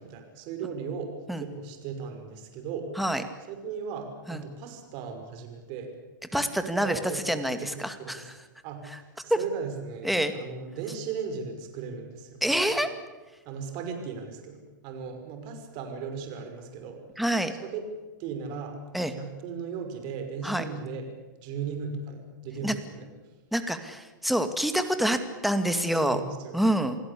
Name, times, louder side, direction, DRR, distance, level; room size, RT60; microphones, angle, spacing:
voice 1, 0.0-2.9 3.5-6.0 6.8-8.3 8.6-12.4 13.4-17.0 17.6-17.9 18.2-18.8 19.2-21.1 21.4-23.1 25.9-26.6, right 6 dB, 45° right, 6 dB, 5.7 m, -37 dB
voice 2, 6.3-8.3 9.3-9.4 10.0-10.3 12.4-12.9 17.2-17.5 18.9-19.1 20.4-20.6 22.6-22.7 23.5-26.2 26.5-27.0, right 1 dB, ahead, 8 dB, 2.1 m, -26 dB
28.0 x 17.5 x 8.5 m, 1.2 s
hypercardioid pair, 130°, 11 cm